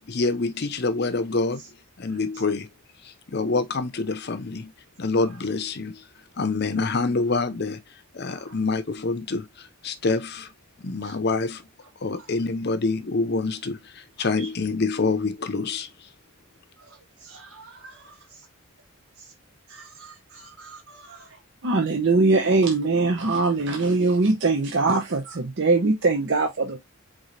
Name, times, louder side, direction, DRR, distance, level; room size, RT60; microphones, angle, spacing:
voice 1, 0.0-1.6 2.0-2.7 3.0-4.7 5.0-6.0 6.4-7.8 8.1-10.5 10.8-11.7 12.0-16.1, left 3 dB, 50° left, 0.6 m, -26 dB
voice 2, 17.3-18.1 19.7-21.3, right 4 dB, 80° right, 2.4 m, -46 dB
voice 3, 21.6-26.8, right 3 dB, 55° right, 0.7 m, -21 dB
4.8 x 3.8 x 2.6 m
head